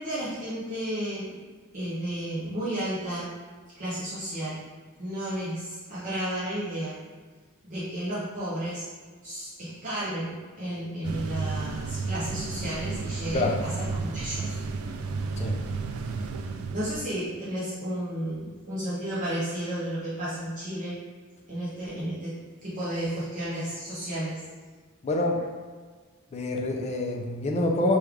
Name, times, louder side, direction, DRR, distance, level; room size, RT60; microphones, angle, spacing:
voice 1, 0.0-1.4 1.7-3.3 3.7-4.6 5.0-7.0 7.6-8.9 9.2-14.6 16.7-21.0 21.5-24.4, right 1 dB, 40° right, -10 dB, 0.7 m, -32 dB
sound 1, 11.0-17.1, right 4 dB, 75° right, 0.3 m, -32 dB
voice 2, 25.0-25.4 26.3-28.0, left 2 dB, 30° left, 1 dB, 0.3 m, -26 dB
3.2 x 2.3 x 3.5 m, 1.5 s
head